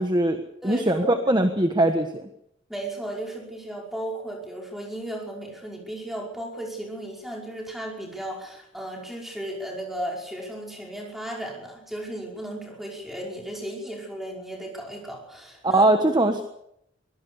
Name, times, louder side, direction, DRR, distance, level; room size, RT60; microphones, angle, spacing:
voice 1, 0.0-2.2 15.6-16.4, right 1 dB, 20° right, 6 dB, 1.3 m, -21 dB
voice 2, 0.6-1.2 2.7-16.0, right 1 dB, ahead, -1 dB, 5.4 m, -35 dB
23.5 x 17.5 x 7.0 m, 0.77 s
head